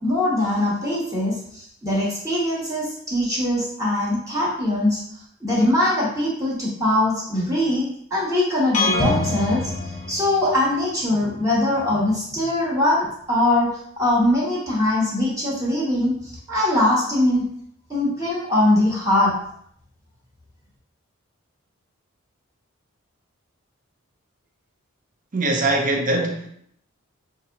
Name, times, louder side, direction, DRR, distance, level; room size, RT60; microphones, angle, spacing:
voice 1, 0.0-5.0 5.4-9.7 10.1-13.7 14.0-17.4 17.9-19.3, left 1 dB, 15° right, -6 dB, 1.1 m, -22 dB
sound 1, 8.7-10.7, left 2 dB, 35° left, 0.6 m, -24 dB
voice 2, 25.3-26.5, right 2 dB, 40° right, 1 dB, 0.6 m, -22 dB
5.4 x 2.6 x 2.8 m, 0.68 s
head